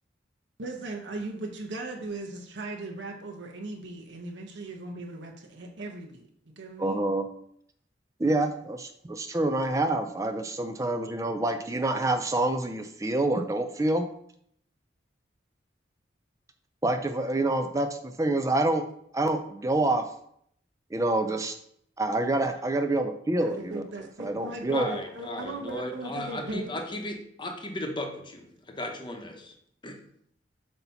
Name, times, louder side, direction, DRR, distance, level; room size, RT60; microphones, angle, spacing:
voice 1, 0.6-7.1 23.4-26.7, right 2 dB, 80° right, 0.9 m, -38 dB
voice 2, 6.8-7.3 8.2-14.1 16.8-17.9 18.2-18.8 19.1-20.0 20.9-21.5 22.0-23.8 24.2-24.9, right 2 dB, 15° right, 0.4 m, -27 dB
voice 3, 24.7-29.5 29.8-30.0, left 1 dB, 25° left, 0.9 m, -36 dB
7.8 x 2.9 x 5.6 m
head